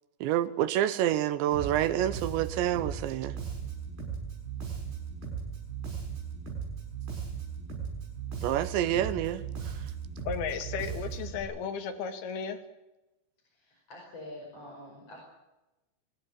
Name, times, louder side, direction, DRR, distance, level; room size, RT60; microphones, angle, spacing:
voice 1, 0.2-3.4 8.4-9.4, right 12 dB, 80° right, 3.0 m, -28 dB
Bass guitar, 1.5-11.4, right 6 dB, 60° right, 8.5 m, -37 dB
voice 2, 10.3-12.6, left 6 dB, 60° left, 3.6 m, -34 dB
voice 3, 13.5-15.2, left 1 dB, 35° left, 5.9 m, -46 dB
23.5 x 16.5 x 8.9 m
omnidirectional pair, 5.4 m